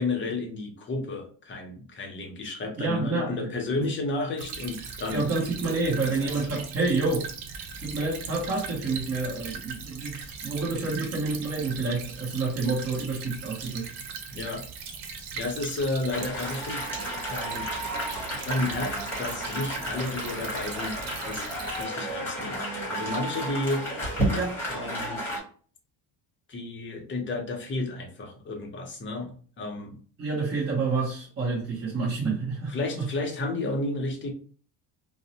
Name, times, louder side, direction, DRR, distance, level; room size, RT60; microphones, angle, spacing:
voice 1, 0.0-5.2 6.0-6.3 14.3-14.7 15.4-16.9 17.3-17.7 18.4-21.0 21.2-22.6 22.9-23.8 24.7-25.2 26.5-30.0 32.7-34.3, left 2 dB, 25° left, 2 dB, 0.5 m, -32 dB
voice 2, 2.8-3.9 5.1-7.3 7.8-13.9 23.0-23.2 24.3-24.5 30.2-33.1, right 3 dB, 30° right, -5 dB, 0.8 m, -29 dB
Stream / Trickle dribble, 4.4-21.8, right 6 dB, 85° right, 0.7 m, -39 dB
sound 1, 16.1-25.4, right 1 dB, 5° left, 1.0 m, -32 dB
2.5 x 2.0 x 2.7 m, 0.42 s
cardioid pair, 140°, 48 cm